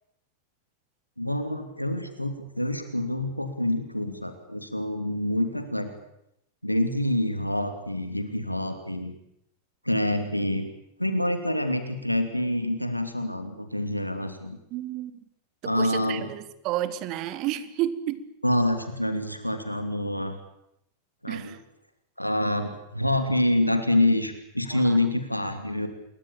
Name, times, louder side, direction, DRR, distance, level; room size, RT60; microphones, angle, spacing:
voice 1, 1.2-5.9 6.6-9.1 9.8-10.7 11.0-14.6 15.6-16.3 18.4-20.4 21.2-21.5 22.2-25.9, left 1 dB, 90° left, 8 dB, 3.0 m, -26 dB
voice 2, 14.7-15.2 15.6-18.2 21.3-21.6 24.7-25.0, right 13 dB, 40° right, 14 dB, 1.9 m, -31 dB
27.0 x 22.5 x 7.1 m, 0.80 s
figure-of-eight pair, 90°, 0 cm